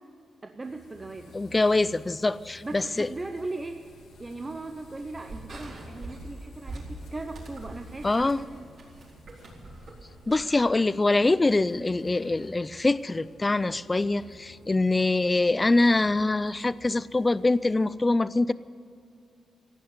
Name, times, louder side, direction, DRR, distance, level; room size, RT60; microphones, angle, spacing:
voice 1, 0.4-1.3 2.6-3.8 4.2-8.7, right 2 dB, 20° right, 5 dB, 0.7 m, -38 dB
sound 1, 0.6-18.0, left 2 dB, 85° left, 2.2 m, -53 dB
voice 2, 1.3-3.1 8.0-8.4 10.3-18.5, left 2 dB, 15° left, 17 dB, 0.3 m, -24 dB
sound 2, 3.8-10.4, right 2 dB, 50° right, 4.4 m, -44 dB
16.0 x 9.6 x 9.4 m, 2.5 s
wide cardioid pair, 170°, 0 cm